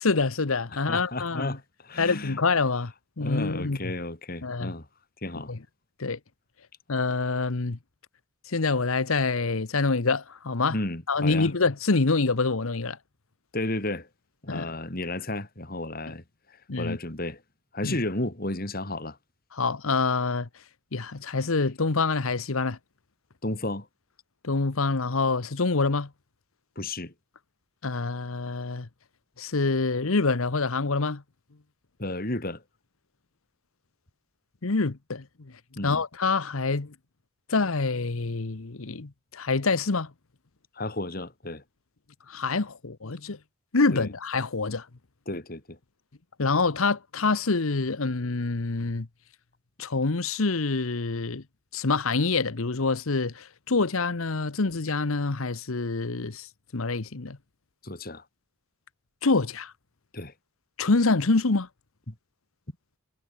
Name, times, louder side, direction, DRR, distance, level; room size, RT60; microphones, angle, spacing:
voice 1, 0.0-1.5 2.0-2.9 3.2-3.8 4.4-4.7 5.5-5.6 6.0-6.2 6.9-7.8 8.5-10.8 11.1-13.0 14.5-14.7 16.7-17.0 17.8-18.0 19.5-20.5 20.9-22.8 24.4-26.1 27.8-28.9 29.4-31.2 34.6-35.5 35.8-36.9 37.5-40.1 42.3-43.4 43.7-44.9 46.4-49.1 49.8-51.4 51.7-56.5 56.7-57.4 59.2-59.7 60.8-61.7, left 3 dB, 75° left, 1.1 m, -26 dB
voice 2, 0.7-2.4 3.2-4.9 5.2-5.5 10.7-11.5 13.5-14.1 14.4-17.4 17.7-19.2 23.4-23.9 26.8-27.1 32.0-32.6 35.8-36.0 40.8-41.6 43.9-44.1 45.3-45.8 57.8-58.2 60.1-60.3 62.1-62.2, left 2 dB, 40° left, 2.9 m, -33 dB
head